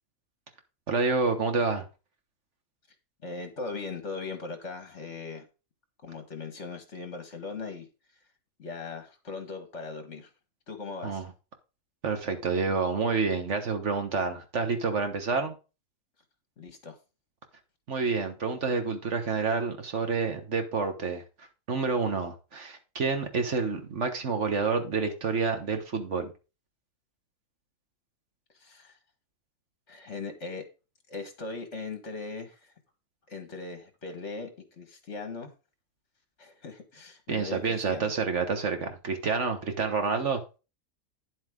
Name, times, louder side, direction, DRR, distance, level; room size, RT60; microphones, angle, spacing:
voice 1, 0.9-1.9 11.0-11.3 12.0-15.5 17.9-26.3 37.3-40.4, right 4 dB, 55° right, 1.6 m, -28 dB
voice 2, 3.2-5.5 6.0-7.9 8.6-10.3 10.7-11.2 16.6-17.0 28.6-29.0 29.9-30.6 31.1-32.7 33.3-34.5 34.8-35.5 36.4-38.1, left 4 dB, 55° left, 2.0 m, -39 dB
10.0 x 7.8 x 3.7 m
omnidirectional pair, 1.5 m